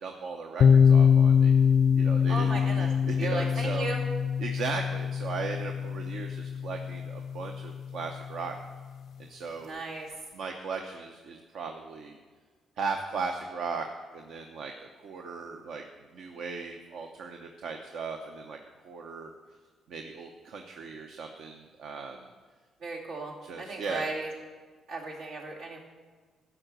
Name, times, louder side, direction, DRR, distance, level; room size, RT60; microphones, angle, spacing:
voice 1, 0.0-1.5 1.9-3.9 4.4-8.5 9.2-9.8 10.3-12.2 12.8-13.9 14.1-15.8 16.1-18.6 18.8-19.3 19.9-22.3 23.4-24.1, right 4 dB, 70° right, 3 dB, 0.8 m, -37 dB
sound 1, 0.6-8.3, left 7 dB, 60° left, 0.3 m, -24 dB
voice 2, 2.3-2.9 3.2-4.0 9.6-10.1 22.8-24.3 24.9-25.8, right 3 dB, 90° right, -4 dB, 2.6 m, -35 dB
12.5 x 5.0 x 7.8 m, 1.5 s
cardioid pair, 90°, 0 cm